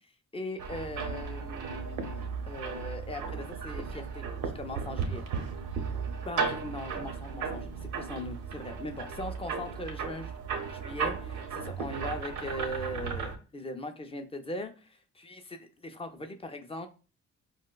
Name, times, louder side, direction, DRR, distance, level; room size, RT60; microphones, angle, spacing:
voice 1, 0.3-5.4 6.2-10.3 10.6-16.9, left 1 dB, 20° left, 6 dB, 0.4 m, -40 dB
sound 1, 0.6-13.4, right 5 dB, 85° right, 0.7 m, -35 dB
4.4 x 2.1 x 2.2 m, 0.34 s
cardioid pair, 90°, 30 cm